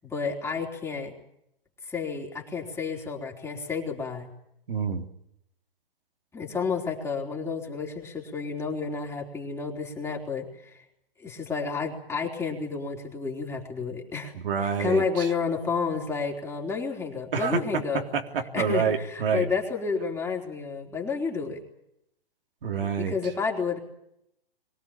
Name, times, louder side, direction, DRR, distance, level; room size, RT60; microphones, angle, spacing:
voice 1, 0.0-1.1 1.8-4.3 6.3-10.8 11.2-18.0 18.5-21.6 23.0-23.8, left 5 dB, 10° left, 0 dB, 4.0 m, -30 dB
voice 2, 4.7-5.1 14.4-15.3 17.3-17.6 17.9-19.5 22.6-23.2, right 6 dB, 65° right, 3 dB, 3.7 m, -27 dB
23.5 x 17.5 x 8.9 m, 0.77 s
hypercardioid pair, 135°, 29 cm